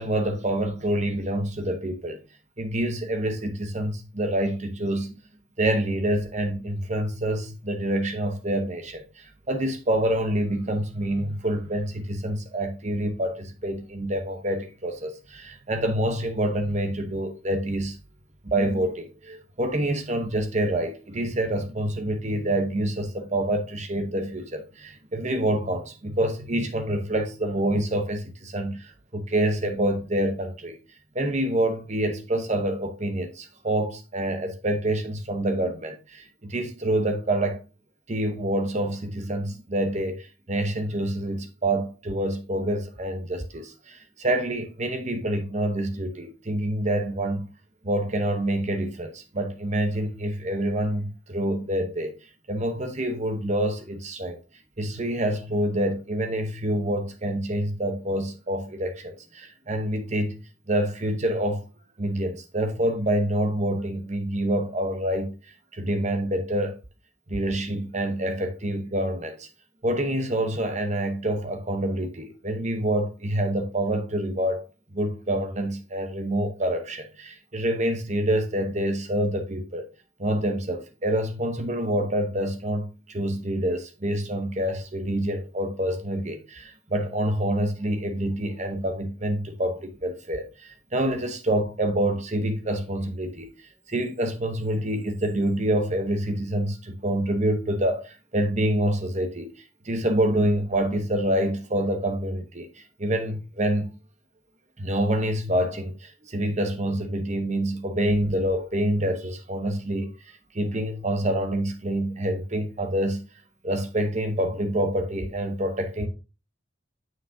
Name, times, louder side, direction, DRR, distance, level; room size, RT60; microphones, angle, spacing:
voice 1, 0.0-2.2 2.6-5.2 5.6-18.0 18.4-30.8 31.1-37.6 38.1-47.5 47.8-52.1 52.5-54.4 54.8-60.4 60.7-61.7 62.0-66.8 67.3-69.5 69.8-74.6 74.9-79.8 80.2-93.5 93.9-99.5 99.8-104.0 104.8-110.2 110.5-113.3 113.6-116.1, right 1 dB, 35° right, 0.9 m, -27 dB
7.5 x 6.2 x 2.7 m
head